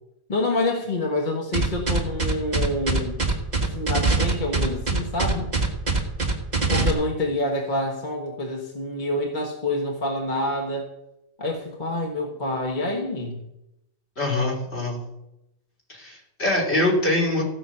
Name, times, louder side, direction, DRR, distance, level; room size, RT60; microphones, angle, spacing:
voice 1, 0.3-3.2 3.6-5.5 6.7-10.9 11.4-13.5, left 1 dB, 45° left, 0 dB, 1.6 m, -27 dB
sound 1, 1.5-6.9, right 3 dB, 40° right, 2.1 m, -22 dB
voice 2, 14.2-15.0 15.9-17.4, left 1 dB, 70° left, -3 dB, 3.7 m, -23 dB
15.5 x 6.3 x 7.1 m, 0.86 s
omnidirectional pair, 1.2 m